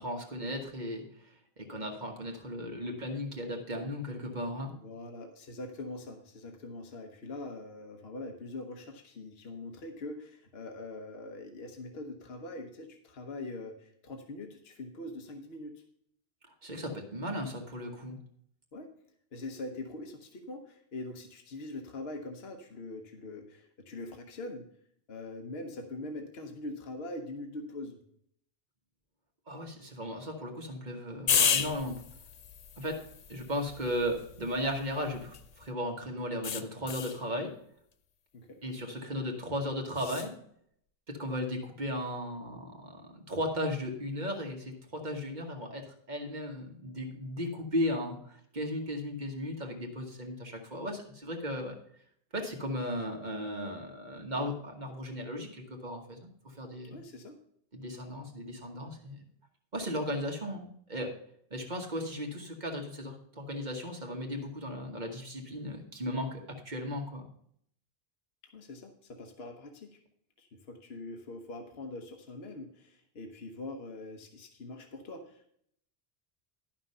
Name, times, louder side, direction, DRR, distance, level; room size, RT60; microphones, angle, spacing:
voice 1, 0.0-4.7 16.5-18.1 29.5-32.0 32.8-33.0 33.3-37.5 38.6-40.3 41.1-51.7 52.3-57.0 57.7-59.2 59.7-61.1 61.5-67.3, equal, 45° right, 2 dB, 1.5 m, -36 dB
voice 2, 4.7-15.7 18.7-18.9 19.3-24.7 25.1-28.0 38.3-38.6 56.9-57.4 68.5-70.0 70.4-75.5, left 2 dB, 70° left, 4 dB, 1.2 m, -43 dB
sound 1, 31.3-35.7 36.4-37.2 39.9-40.3, left 7 dB, 50° left, 0.5 m, -33 dB
11.0 x 6.0 x 5.4 m, 0.67 s
omnidirectional pair, 1.1 m